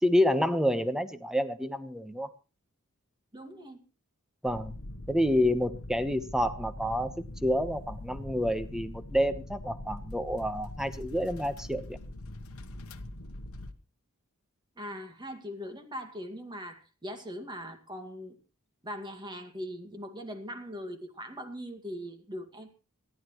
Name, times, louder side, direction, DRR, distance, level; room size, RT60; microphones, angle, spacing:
voice 1, 0.0-2.3 4.4-4.7 5.1-7.1 7.4-12.0, equal, 5° right, 11 dB, 1.0 m, -28 dB
voice 2, 3.3-3.8 14.8-18.4 18.8-22.7, equal, 20° right, 6 dB, 2.0 m, -40 dB
sound 1, 4.5-13.7, left 1 dB, 70° left, 1.2 m, -42 dB
27.5 x 11.0 x 3.1 m, 0.32 s
head